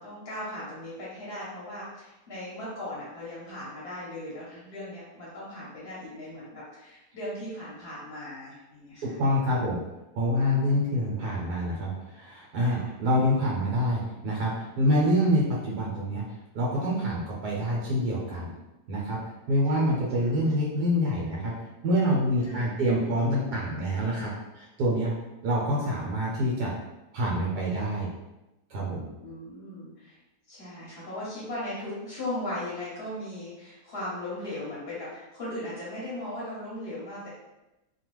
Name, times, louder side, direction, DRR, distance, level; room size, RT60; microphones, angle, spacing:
voice 1, 0.0-9.1 12.6-12.9 15.0-15.2 19.7-19.8 20.2-20.3 22.5-22.8 29.2-30.2 30.5-37.3, left 1 dB, 45° left, -8 dB, 0.9 m, -38 dB
voice 2, 9.0-9.8 10.1-16.2 16.5-18.5 18.9-19.2 19.5-21.5 21.8-24.3 24.6-25.1 25.4-26.7 27.1-28.1 28.7-29.1, equal, 80° right, -4 dB, 1.3 m, -26 dB
2.8 x 2.3 x 3.1 m, 0.99 s
omnidirectional pair, 1.7 m